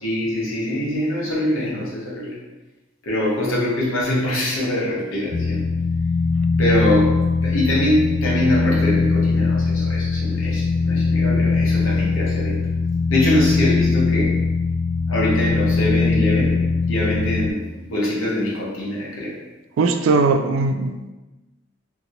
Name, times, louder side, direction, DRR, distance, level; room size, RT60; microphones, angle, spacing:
voice 1, 0.0-2.4 3.0-5.6 6.6-12.6 13.1-14.4 15.1-16.6 16.8-19.4, left 1 dB, 80° left, -6 dB, 1.0 m, -23 dB
sound 1, 5.3-17.5, left 4 dB, 65° left, 0.3 m, -21 dB
voice 2, 19.8-21.1, right 3 dB, 80° right, 7 dB, 0.3 m, -19 dB
2.9 x 2.8 x 2.6 m, 1.1 s
head